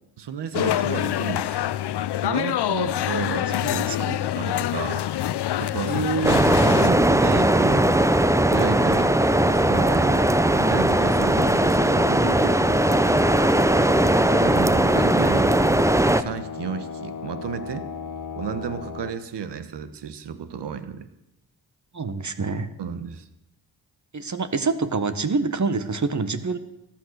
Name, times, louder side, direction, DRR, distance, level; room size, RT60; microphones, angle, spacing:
voice 1, 0.2-1.7 2.2-5.0 5.6-6.2 6.6-7.9 8.5-9.1 9.5-10.2 10.6-12.8 14.4-15.6 16.2-17.8 18.3-21.1 22.8-23.3, right 7 dB, 75° right, 11 dB, 1.3 m, -32 dB
sound 1, 0.5-6.9, left 12 dB, 70° left, 0.6 m, -26 dB
voice 2, 3.6-4.0 5.8-6.4 21.9-22.7 24.1-26.6, right 4 dB, 45° right, 11 dB, 1.4 m, -26 dB
sound 2, 6.2-16.2, right 1 dB, 5° right, 0.8 m, -19 dB
sound 3, 7.2-19.1, left 5 dB, 50° left, 1.3 m, -35 dB
14.5 x 10.5 x 6.5 m, 0.89 s
supercardioid pair, 45°, 41 cm